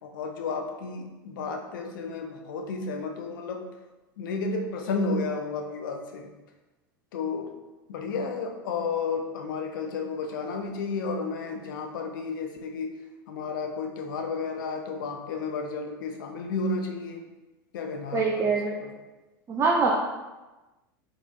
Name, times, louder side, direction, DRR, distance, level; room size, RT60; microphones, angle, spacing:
voice 1, 0.0-3.6 4.2-6.3 7.1-7.5 7.9-12.9 13.3-17.2 17.7-18.9, left 4 dB, 70° left, 3 dB, 0.5 m, -32 dB
voice 2, 18.1-18.7 19.5-19.9, right 4 dB, 25° right, -2 dB, 0.4 m, -23 dB
3.9 x 2.9 x 2.4 m, 1.1 s
hypercardioid pair, 85°, 11 cm